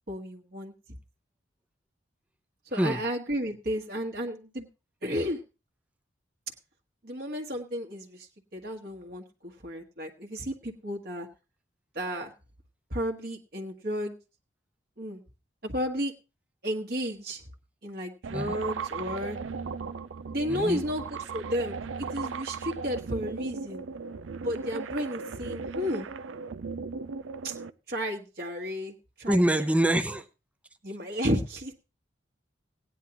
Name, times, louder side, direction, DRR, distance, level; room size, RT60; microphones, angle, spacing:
voice 1, 0.1-0.7 2.7-4.7 5.0-5.4 7.0-11.3 11.9-12.3 12.9-14.1 15.0-15.2 15.6-16.1 16.6-17.4 17.8-19.4 20.3-21.8 22.1-23.8 24.4-26.1 27.4-27.5 27.9-29.4 29.9-30.0 30.8-31.7, equal, 50° right, 1 dB, 1.4 m, -33 dB
sound 1, 18.2-27.7, right 5 dB, 90° right, 0.5 m, -37 dB
voice 2, 20.5-20.8 29.3-30.2, right 1 dB, 5° right, 10 dB, 0.6 m, -25 dB
17.5 x 10.0 x 2.9 m, 0.29 s
head